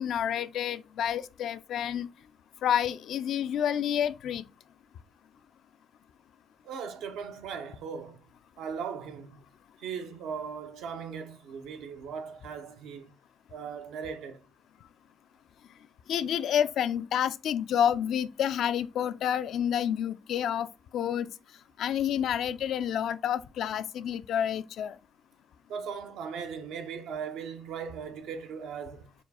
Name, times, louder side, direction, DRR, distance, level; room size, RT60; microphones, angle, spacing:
voice 1, 0.0-2.1 2.6-4.4 16.1-21.3 21.8-25.0, left 9 dB, 75° left, 0.3 m, -29 dB
voice 2, 6.6-8.2 8.6-9.4 9.8-13.1 13.5-14.5 25.7-29.1, right 6 dB, 85° right, 0.6 m, -38 dB
4.4 x 2.3 x 4.0 m
cardioid pair, 90°, 0 cm